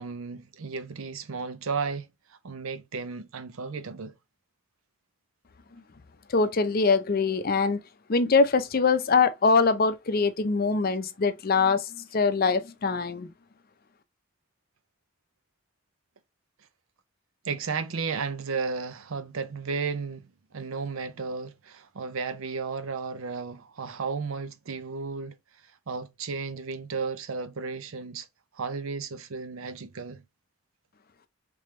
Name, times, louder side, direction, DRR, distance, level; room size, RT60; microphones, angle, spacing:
voice 1, 0.0-4.1 17.4-20.3 20.5-25.4 25.9-28.3 28.5-30.2, right 5 dB, 75° right, 0.6 m, -34 dB
voice 2, 6.3-7.8 8.1-13.3, left 4 dB, 45° left, 0.5 m, -23 dB
3.4 x 3.3 x 3.0 m
head